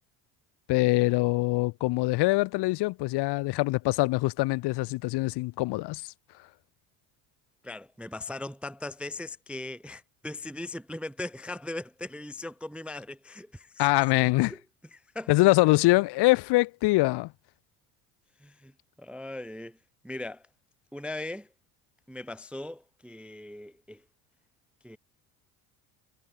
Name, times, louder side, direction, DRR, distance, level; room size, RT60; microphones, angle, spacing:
voice 1, 0.7-6.1 13.8-14.5 15.3-17.3, left 21 dB, 60° left, 0.7 m, -24 dB
voice 2, 7.6-13.8 14.5-14.6 14.9-15.3 18.4-18.7 19.0-19.8 20.0-20.4 20.9-21.5 22.1-24.0 24.8-25.0, left 2 dB, 5° right, 0.4 m, -39 dB
supercardioid pair, 80°, 47 cm